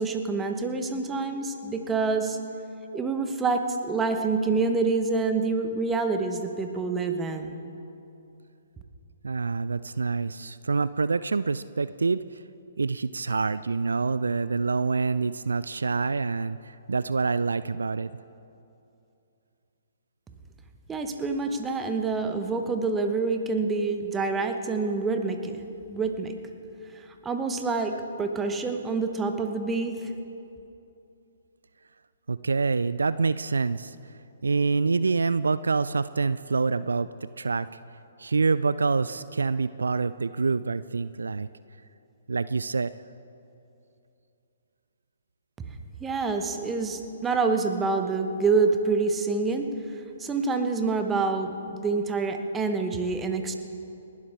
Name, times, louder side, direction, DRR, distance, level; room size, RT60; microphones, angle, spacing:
voice 1, 0.0-2.4 2.9-7.5 20.9-26.3 26.9-30.1 46.0-49.7 50.2-53.5, right 4 dB, 10° right, 6 dB, 1.1 m, -27 dB
voice 2, 9.2-12.4 12.8-18.1 32.3-34.0 34.4-37.1 37.4-37.7 38.2-41.5 42.3-42.9, right 4 dB, 65° right, 15 dB, 0.3 m, -26 dB
29.5 x 12.0 x 3.4 m, 2.7 s
figure-of-eight pair, 125°, 0 cm